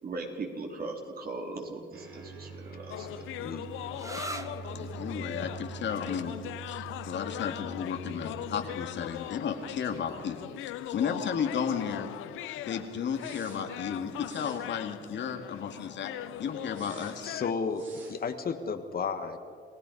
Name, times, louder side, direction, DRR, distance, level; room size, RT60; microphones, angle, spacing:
voice 1, 0.0-3.2, right 3 dB, 50° right, 1 dB, 3.8 m, -39 dB
sound 1, 1.9-11.1 11.4-11.5 13.1-13.6 14.1-14.6 16.7-17.2 17.7-18.2, right 5 dB, 75° right, 6.2 m, -46 dB
sound 2, 2.9-17.5, left 14 dB, 90° left, 0.6 m, -40 dB
sound 3, 3.9-11.3, right 2 dB, 15° right, 1.2 m, -47 dB
voice 2, 4.7-6.3 6.7-6.8 7.1-10.5 10.8-12.1 12.7-17.4, left 7 dB, 65° left, 6 dB, 2.1 m, -33 dB
voice 3, 17.2-19.4, left 5 dB, 50° left, 8 dB, 1.6 m, -33 dB
29.0 x 17.0 x 5.4 m, 2.3 s
cardioid pair, 90°, 20 cm